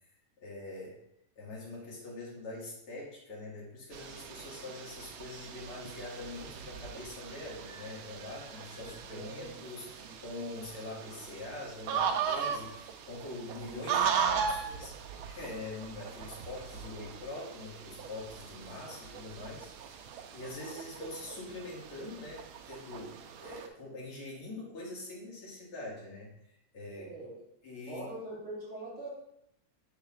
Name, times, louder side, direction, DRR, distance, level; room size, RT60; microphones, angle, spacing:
voice 1, 0.4-1.0 1.4-15.0 15.3-20.0 20.3-27.1 27.6-28.1, left 2 dB, 80° left, -5 dB, 2.8 m, -44 dB
sound 1, 3.9-23.7, right 7 dB, 80° right, 1.4 m, -38 dB
voice 2, 8.7-9.6 10.0-10.1 26.9-27.3 27.9-29.1, right 2 dB, 35° right, -7 dB, 3.2 m, -44 dB
7.6 x 6.5 x 2.4 m, 0.78 s
omnidirectional pair, 2.4 m